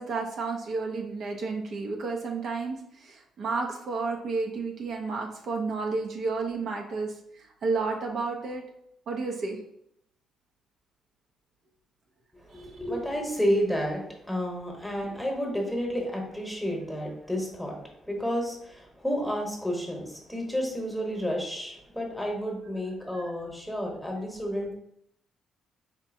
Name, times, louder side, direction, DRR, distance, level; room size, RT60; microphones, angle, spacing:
voice 1, 0.0-8.6 9.1-9.6 12.5-12.7 23.1-23.2, right 4 dB, 65° right, 1 dB, 0.6 m, -31 dB
voice 2, 12.4-24.7, equal, 5° left, 0 dB, 1.1 m, -31 dB
4.3 x 2.6 x 2.6 m, 0.74 s
cardioid pair, 90°, 0 cm